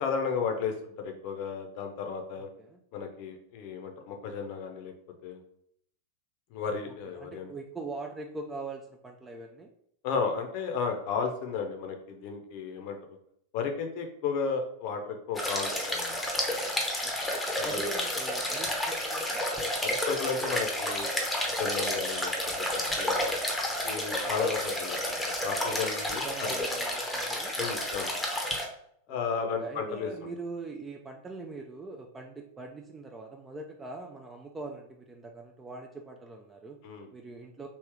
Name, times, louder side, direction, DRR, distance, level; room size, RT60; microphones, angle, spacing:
voice 1, 0.0-2.5 2.9-4.9 5.2-5.4 6.5-7.5 10.0-13.0 13.5-16.2 16.5-16.6 17.6-17.9 19.8-21.1 21.6-22.3 23.0-23.4 23.8-26.3 27.6-28.1 29.1-30.1 36.8-37.1, left 5 dB, 45° left, 4 dB, 0.7 m, -33 dB
voice 2, 2.4-2.8 6.9-9.7 17.0-17.3 17.6-19.4 24.2-24.3 26.2-27.5 29.1-36.8 37.1-37.7, right 3 dB, 15° right, 2 dB, 0.4 m, -42 dB
sound 1, 15.3-28.7, left 1 dB, 5° left, 0.8 m, -31 dB
3.2 x 2.7 x 3.5 m, 0.71 s
figure-of-eight pair, 90°, 0 cm